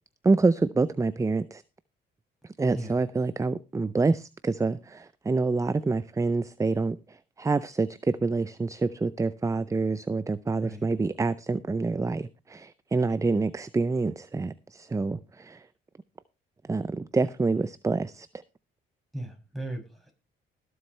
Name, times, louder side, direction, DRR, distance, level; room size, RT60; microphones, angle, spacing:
voice 1, 0.2-1.6 2.6-15.6 16.7-18.3, right 3 dB, 15° right, 0.5 m, -27 dB
voice 2, 19.1-20.1, right 1 dB, ahead, 6.8 m, -37 dB
20.0 x 7.8 x 3.2 m
cardioid pair, 90°, 20 cm